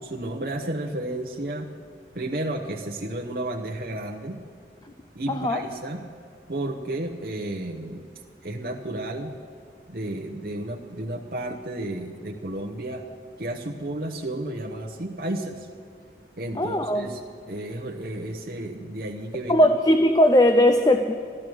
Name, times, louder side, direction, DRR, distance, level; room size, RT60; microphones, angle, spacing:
voice 1, 0.0-1.7 2.1-4.4 5.1-6.0 6.5-8.1 8.4-9.4 9.9-13.0 13.4-15.7 16.4-17.2 17.5-19.7, right 1 dB, 55° right, 0 dB, 0.9 m, -32 dB
voice 2, 5.3-5.6 16.6-17.1 19.5-21.1, left 1 dB, 20° left, 7 dB, 0.4 m, -19 dB
14.0 x 12.0 x 6.3 m, 2.2 s
head